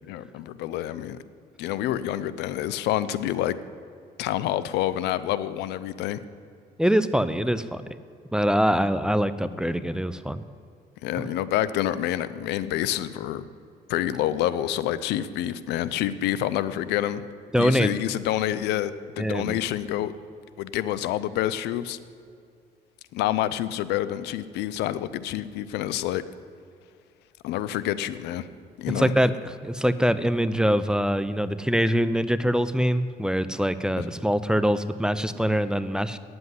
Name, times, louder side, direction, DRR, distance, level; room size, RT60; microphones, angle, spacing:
voice 1, 0.1-1.2 1.6-3.6 4.2-6.2 11.0-13.4 13.9-17.2 17.6-20.1 20.6-22.0 23.1-26.2 27.4-28.5 28.8-29.1 34.0-34.1, left 12 dB, 85° left, 15 dB, 0.6 m, -27 dB
voice 2, 6.8-7.8 8.3-10.4 11.2-11.3 17.5-17.9 19.2-19.6 28.9-36.2, equal, 5° right, 13 dB, 0.4 m, -24 dB
9.5 x 7.8 x 9.5 m, 2.4 s
cardioid pair, 110°, 17 cm